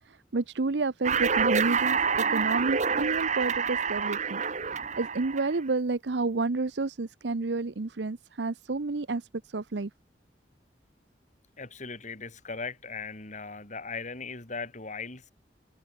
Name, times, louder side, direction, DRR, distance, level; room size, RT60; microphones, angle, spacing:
voice 1, 0.1-4.4 5.0-9.3 9.5-9.9, right 3 dB, 75° right, 0.8 m, -30 dB
sound 1, 1.0-5.5, right 6 dB, 45° right, 1.7 m, -27 dB
voice 2, 11.6-15.3, left 4 dB, 45° left, 4.1 m, -38 dB
head